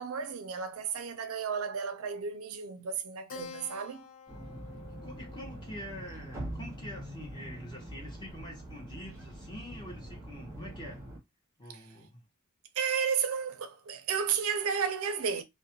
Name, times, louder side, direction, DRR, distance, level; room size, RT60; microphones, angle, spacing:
voice 1, 0.0-4.1 11.7-11.8 12.8-15.4, right 6 dB, 75° right, 0.5 m, -33 dB
Keyboard (musical), 3.3-8.3, left 4 dB, 65° left, 0.4 m, -51 dB
sound 1, 4.3-11.2, right 1 dB, 15° right, 0.8 m, -44 dB
voice 2, 5.0-11.0 11.6-12.2, equal, 20° left, 0.6 m, -45 dB
2.3 x 2.1 x 2.8 m
head